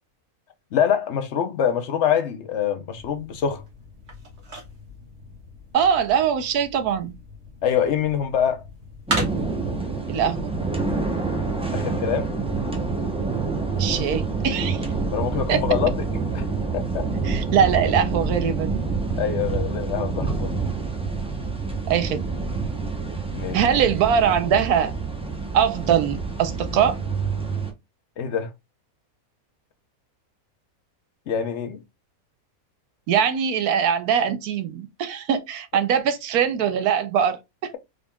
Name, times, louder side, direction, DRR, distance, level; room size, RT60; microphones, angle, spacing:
voice 1, 0.7-3.6 7.6-8.6 11.7-12.3 15.1-15.9 16.3-16.5 16.7-17.0 19.2-20.6 23.3-23.6 28.2-28.5 31.3-31.8, left 8 dB, 60° left, 0.9 m, -24 dB
sound 1, 2.9-9.8, right 1 dB, 50° right, 1.7 m, -36 dB
voice 2, 5.7-7.1 10.1-10.5 13.8-14.9 15.5-15.6 17.2-18.9 21.9-22.2 23.5-24.9 25.5-27.0 33.1-37.7, right 8 dB, 80° right, 1.1 m, -22 dB
sound 2, 9.1-27.7, right 4 dB, 10° right, 0.4 m, -27 dB
3.8 x 3.7 x 2.2 m
omnidirectional pair, 1.6 m